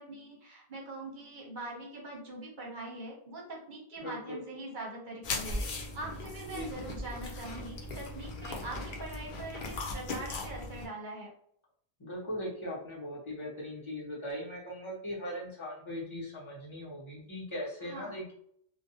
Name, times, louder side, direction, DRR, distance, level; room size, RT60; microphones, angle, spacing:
voice 1, 0.0-5.6 5.9-11.3 17.8-18.2, right 2 dB, 50° right, -3 dB, 0.9 m, -43 dB
voice 2, 4.0-4.4 6.4-6.8 12.0-18.3, equal, 25° left, -5 dB, 0.9 m, -39 dB
sound 1, 5.2-10.9, left 2 dB, 55° left, 0.6 m, -38 dB
2.5 x 2.2 x 2.7 m, 0.64 s
omnidirectional pair, 1.2 m